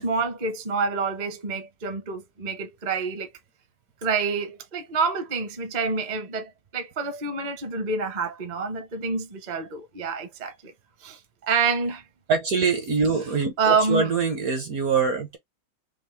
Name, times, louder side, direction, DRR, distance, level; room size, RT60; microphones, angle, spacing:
voice 1, 0.0-3.3 4.0-10.7 11.0-12.0 13.6-14.1, right 4 dB, 40° right, 0.6 m, -27 dB
voice 2, 12.3-15.4, right 5 dB, 60° right, 0.9 m, -24 dB
5.3 x 2.0 x 3.4 m
omnidirectional pair, 2.3 m